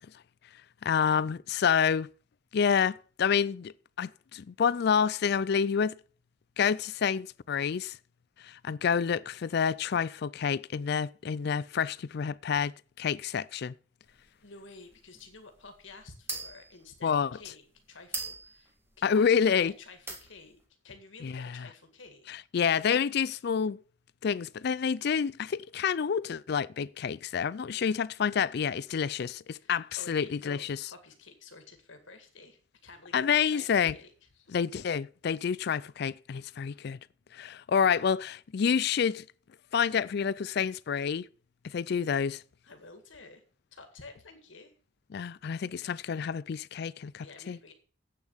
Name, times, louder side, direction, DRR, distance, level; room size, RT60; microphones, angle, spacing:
voice 1, 0.8-2.1 2.5-5.9 6.6-8.0 8.4-13.7 17.0-17.3 19.0-19.7 21.2-21.6 22.3-23.8 24.2-30.8 33.1-33.9 34.5-37.0 37.3-39.2 39.7-41.3 41.6-42.4 45.1-47.6, left 7 dB, 55° left, 0.4 m, -28 dB
sound 1, 14.1-19.7 20.0-20.6, right 3 dB, 15° right, 1.9 m, -42 dB
voice 2, 14.4-20.6 20.8-22.3 29.5-34.5 42.6-43.4 43.7-44.7 47.2-47.7, left 3 dB, 75° left, 1.9 m, -51 dB
8.4 x 7.1 x 7.1 m
head